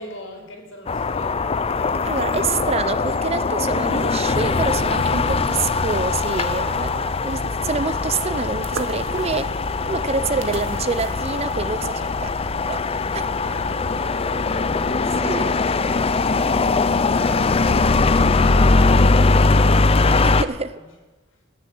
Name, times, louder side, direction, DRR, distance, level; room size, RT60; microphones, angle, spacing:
voice 1, 0.0-1.8 6.6-7.0 11.8-12.1 13.0-15.5 20.4-20.6 21.3-21.4, left 1 dB, 80° left, 3.4 m, -41 dB
sound 1, 0.9-20.4, left 3 dB, 30° left, 0.5 m, -21 dB
voice 2, 2.0-9.5 9.8-12.3 12.7-12.8 13.1-13.4 15.2-15.5 20.2-20.8, right 4 dB, 30° right, 0.6 m, -27 dB
sound 2, 7.0-12.0, right 3 dB, 85° right, 1.3 m, -40 dB
18.5 x 7.4 x 7.8 m
head